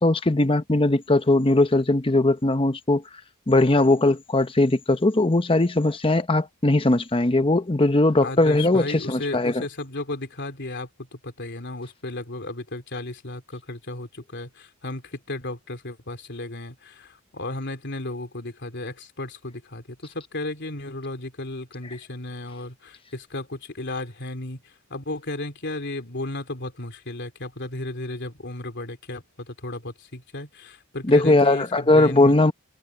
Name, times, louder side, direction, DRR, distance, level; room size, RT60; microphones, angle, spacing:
voice 1, 0.0-3.0 3.5-9.6 31.0-32.5, left 2 dB, 25° left, 1.0 m, -19 dB
voice 2, 8.2-24.6 24.9-32.3, left 2 dB, 55° left, 3.3 m, -34 dB
head